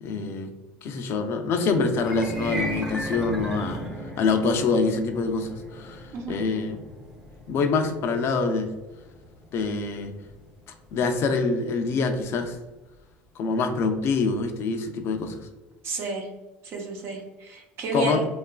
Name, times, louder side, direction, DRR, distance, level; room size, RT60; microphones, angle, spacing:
voice 1, 0.0-0.5 0.8-3.9 4.2-6.8 7.5-8.7 9.5-10.1 10.9-12.6 13.4-15.4 17.9-18.2, left 4 dB, 55° left, 6 dB, 0.4 m, -25 dB
sound 1, 2.0-12.3, equal, 10° right, 0.8 m, -37 dB
voice 2, 6.1-6.5 15.8-16.3 16.6-18.2, right 3 dB, 55° right, 0 dB, 0.8 m, -31 dB
3.0 x 2.4 x 2.3 m, 1.1 s
supercardioid pair, 90°, 5 cm